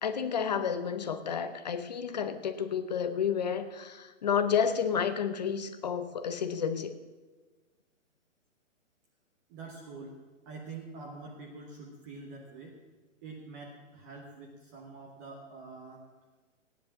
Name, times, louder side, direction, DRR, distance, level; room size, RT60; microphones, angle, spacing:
voice 1, 0.0-7.0, left 7 dB, 35° left, 11 dB, 0.7 m, -31 dB
voice 2, 9.5-10.2 10.5-12.8 13.2-16.0, right 3 dB, 15° right, -1 dB, 1.0 m, -45 dB
16.0 x 10.5 x 7.3 m, 1.3 s
hypercardioid pair, 165°, 39 cm